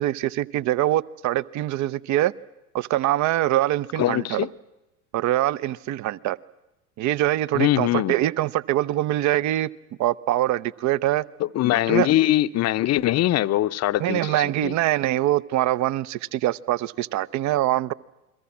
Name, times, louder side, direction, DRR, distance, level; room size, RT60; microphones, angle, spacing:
voice 1, 0.0-2.3 2.7-4.5 5.1-6.4 7.0-9.7 10.0-11.2 11.9-12.1 14.0-17.9, right 14 dB, 40° right, 0.8 m, -23 dB
voice 2, 4.0-4.5 7.5-8.1 11.4-14.7, left 14 dB, 35° left, 0.8 m, -22 dB
29.0 x 22.0 x 7.3 m
hypercardioid pair, 85°, 47 cm